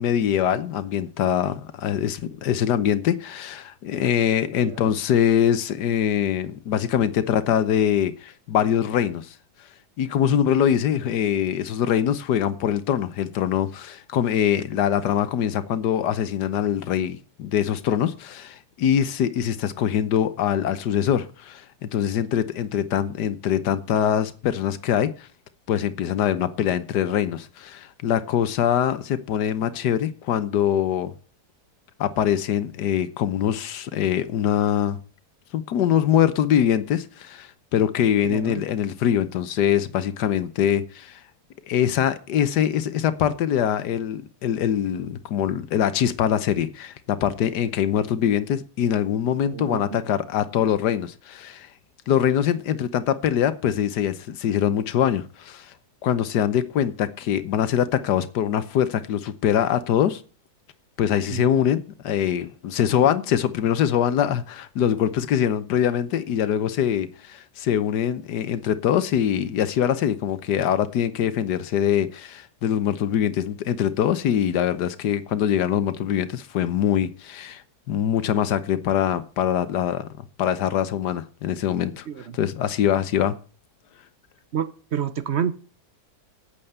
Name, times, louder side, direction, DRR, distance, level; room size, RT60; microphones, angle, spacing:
voice 1, 0.0-9.3 10.0-25.1 25.7-31.1 32.0-35.0 35.5-41.2 41.7-51.7 52.1-55.7 56.0-60.2 61.0-77.6 77.9-80.1 80.4-82.1 82.3-83.3, left 9 dB, 75° left, 1.5 m, -23 dB
voice 2, 4.6-4.9 10.2-10.5 38.2-38.6 49.5-50.0 61.3-61.5 82.1-82.2 84.5-85.5, right 8 dB, 55° right, 0.8 m, -29 dB
8.9 x 8.4 x 7.9 m
omnidirectional pair, 1.8 m